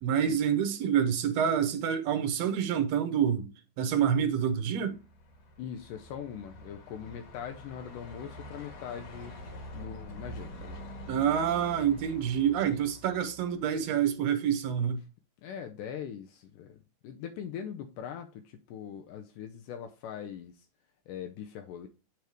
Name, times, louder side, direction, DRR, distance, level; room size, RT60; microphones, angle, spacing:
voice 1, 0.0-3.5 3.8-5.0 11.1-15.0, right 8 dB, 70° right, 1.6 m, -27 dB
Truck, 4.6-14.0, equal, 60° left, 2.4 m, -46 dB
voice 2, 5.6-9.4 9.7-10.8 15.4-20.7 21.1-21.9, left 8 dB, 85° left, 2.3 m, -41 dB
9.2 x 3.6 x 4.6 m
omnidirectional pair, 3.7 m